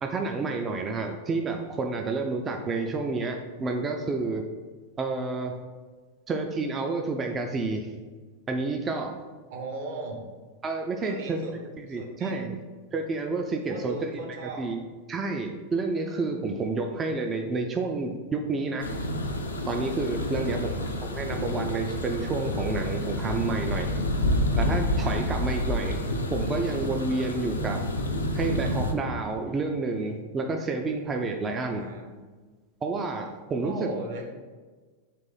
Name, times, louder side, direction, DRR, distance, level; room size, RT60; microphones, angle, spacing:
voice 1, 0.0-4.4 5.0-5.6 6.3-7.9 8.5-9.2 10.6-11.4 11.9-12.5 12.9-14.0 14.6-14.8 15.1-18.9 19.7-20.6 21.0-23.9 24.6-26.0 26.3-27.8 28.3-31.8 32.8-33.9, right 3 dB, 20° right, 3 dB, 0.3 m, -29 dB
voice 2, 9.5-10.2 11.0-11.5 11.9-12.5 13.7-14.7 20.3-21.1 31.6-32.1 33.6-34.3, right 2 dB, 50° right, 1 dB, 0.8 m, -38 dB
sound 1, 18.8-28.9, left 1 dB, 75° left, 0.4 m, -29 dB
4.0 x 2.6 x 3.9 m, 1.4 s
figure-of-eight pair, 90°, 0 cm